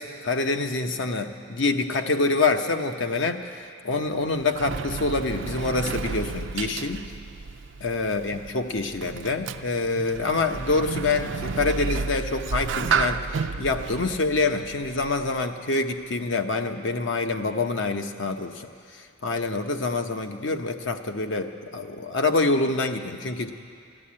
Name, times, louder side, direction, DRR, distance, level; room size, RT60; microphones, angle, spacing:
voice 1, 0.0-7.0 7.8-13.3 13.6-18.7 18.9-23.5, left 3 dB, 65° left, 6 dB, 0.9 m, -26 dB
Sliding door, 4.0-15.4, right 5 dB, 60° right, 0.4 m, -32 dB
13.0 x 12.5 x 8.6 m, 2.3 s
head